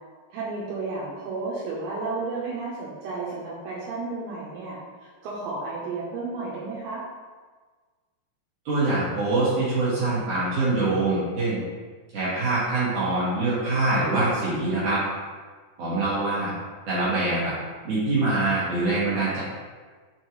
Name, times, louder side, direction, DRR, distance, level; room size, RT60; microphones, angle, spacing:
voice 1, 0.3-7.1, right 3 dB, 80° right, -6 dB, 3.1 m, -32 dB
voice 2, 8.7-11.6 12.1-15.0 15.8-16.5 16.9-17.5 17.8-19.4, right 2 dB, 60° right, -10 dB, 2.3 m, -24 dB
7.3 x 4.4 x 3.0 m, 1.4 s
omnidirectional pair, 5.3 m